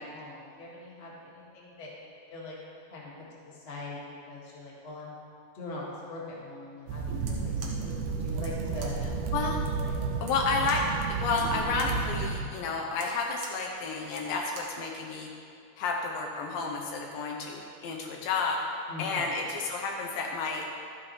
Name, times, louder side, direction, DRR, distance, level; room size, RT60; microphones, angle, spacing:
voice 1, 0.0-2.6 2.9-5.1 5.5-9.0 18.9-19.3, left 2 dB, 60° left, -5 dB, 0.6 m, -42 dB
sound 1, 6.9-12.4, right 4 dB, 90° right, 2.8 m, -32 dB
sound 2, 7.1-14.8, right 4 dB, 65° right, 1.8 m, -49 dB
voice 2, 9.3-9.6 10.2-15.3 15.8-18.6 19.0-20.7, left 4 dB, 75° left, 1 dB, 2.2 m, -31 dB
13.0 x 9.5 x 3.1 m, 2.4 s
omnidirectional pair, 4.6 m